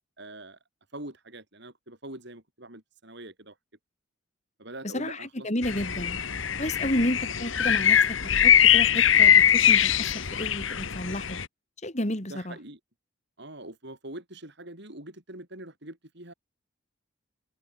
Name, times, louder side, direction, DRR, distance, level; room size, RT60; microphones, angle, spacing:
voice 1, 0.2-0.6 0.9-3.6 4.6-5.5 6.8-7.2 12.3-12.8 13.4-16.3, right 1 dB, 55° right, 5.8 m, -43 dB
voice 2, 4.9-6.2 6.6-8.2 8.4-11.4 11.8-12.6, left 1 dB, 35° left, 3.7 m, -31 dB
sound 1, 5.6-11.4, left 9 dB, 65° left, 1.5 m, -22 dB
head